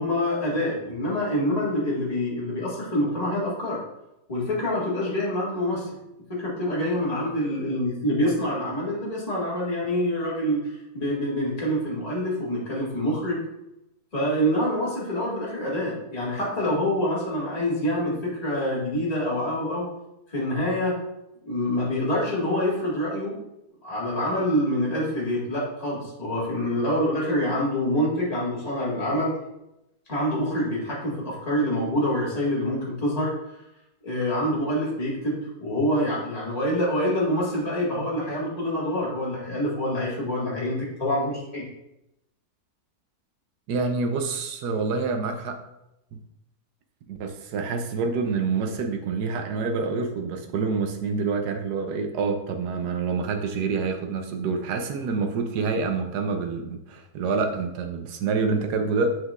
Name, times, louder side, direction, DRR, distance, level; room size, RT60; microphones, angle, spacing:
voice 1, 0.0-3.8 4.3-5.9 6.3-13.4 14.1-19.9 20.3-21.0 21.4-23.4 23.8-29.3 30.1-33.3 34.0-41.7, equal, 25° left, -6 dB, 1.9 m, -26 dB
voice 2, 43.7-45.6 47.1-59.2, right 4 dB, 85° right, 5 dB, 1.3 m, -27 dB
7.5 x 5.9 x 2.5 m, 0.87 s
omnidirectional pair, 1.7 m